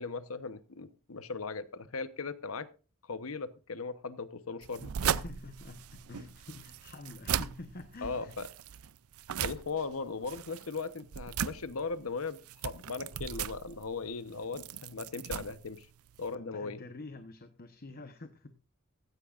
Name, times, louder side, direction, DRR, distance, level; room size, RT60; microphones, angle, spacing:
voice 1, 0.0-2.7 3.0-4.9 8.0-8.5 9.4-15.9 16.2-16.8, left 4 dB, 75° left, 13 dB, 1.0 m, -38 dB
sound 1, 4.6-16.3, right 9 dB, 90° right, 0.5 m, -38 dB
voice 2, 5.0-8.4 16.3-18.5, left 2 dB, 45° left, 8 dB, 1.0 m, -47 dB
16.0 x 14.5 x 2.5 m, 0.34 s
head